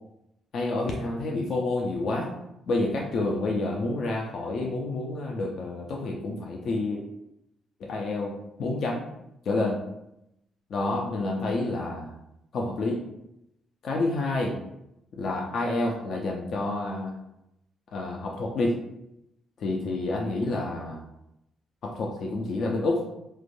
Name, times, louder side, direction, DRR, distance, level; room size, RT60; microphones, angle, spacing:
voice 1, 0.5-2.3 2.7-7.0 7.8-9.0 9.5-9.8 10.7-12.1 12.5-13.0 13.8-14.6 15.1-17.1 17.9-18.8 19.6-21.0 21.8-23.0, left 2 dB, 60° left, -1 dB, 0.4 m, -28 dB
3.1 x 2.1 x 2.5 m, 0.84 s
cardioid pair, 90°, 0 cm